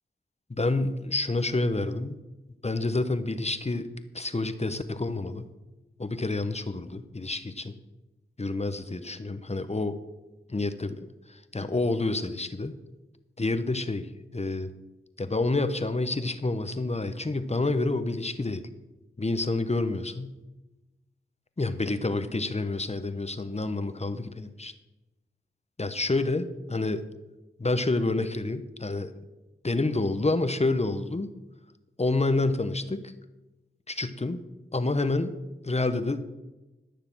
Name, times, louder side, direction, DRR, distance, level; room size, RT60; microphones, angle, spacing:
voice 1, 0.5-2.1 2.6-3.9 4.1-5.5 6.0-7.8 8.4-10.0 10.5-12.8 13.4-14.7 15.2-18.6 19.2-20.4 21.6-24.7 25.8-27.1 27.6-29.1 29.6-31.3 32.0-33.1 34.0-34.4 34.7-35.3 35.6-36.2, left 2 dB, 30° left, 10 dB, 1.0 m, -28 dB
13.5 x 6.7 x 6.1 m, 1.1 s
cardioid pair, 40°, 21 cm